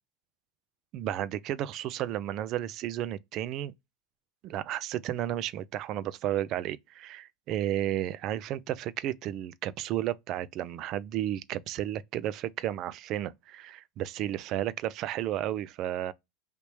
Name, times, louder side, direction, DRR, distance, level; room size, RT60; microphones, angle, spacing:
voice 1, 0.9-3.7 4.4-16.1, right 12 dB, 50° right, 0.4 m, -33 dB
3.3 x 2.8 x 3.0 m
supercardioid pair, 125°, 0 cm